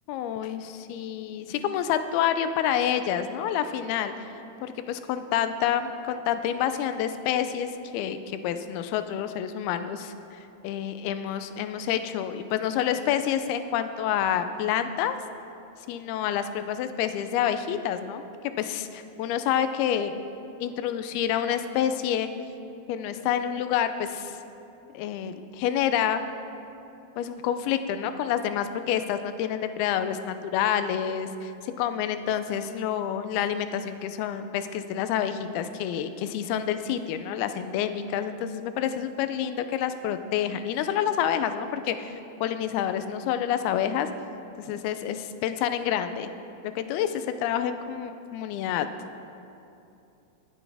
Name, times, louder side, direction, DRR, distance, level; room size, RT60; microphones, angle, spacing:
voice 1, 0.1-0.6 0.9-4.1 4.6-15.2 15.9-18.2 18.6-20.1 20.6-22.3 22.9-24.4 24.9-26.2 27.2-44.1 44.6-46.3 46.8-48.9, left 9 dB, 85° left, 10 dB, 2.5 m, -28 dB
24.0 x 8.5 x 3.4 m, 2.8 s
omnidirectional pair, 4.5 m